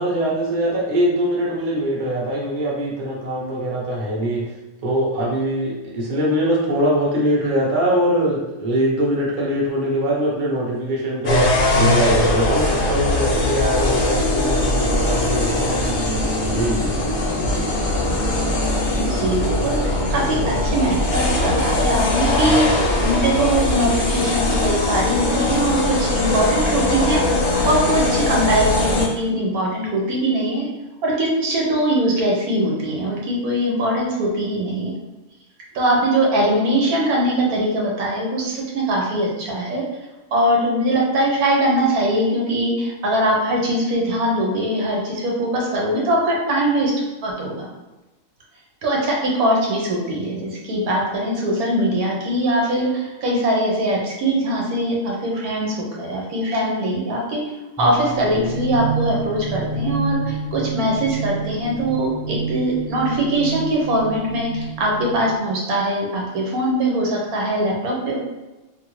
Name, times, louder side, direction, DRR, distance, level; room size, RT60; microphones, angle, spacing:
voice 1, 0.0-4.4 4.8-15.9 16.4-16.9, equal, 40° right, -5 dB, 0.8 m, -22 dB
sound 1, 11.2-29.0, left 2 dB, 50° left, 0.7 m, -20 dB
voice 2, 19.0-27.4 27.6-30.7 31.0-34.9 35.7-39.8 40.3-46.9 47.2-47.7 48.8-57.4 57.8-68.2, right 1 dB, 90° right, -2 dB, 1.2 m, -21 dB
sound 2, 57.8-65.5, right 4 dB, ahead, 0.6 m, -29 dB
2.6 x 2.5 x 3.0 m, 1.1 s
omnidirectional pair, 1.5 m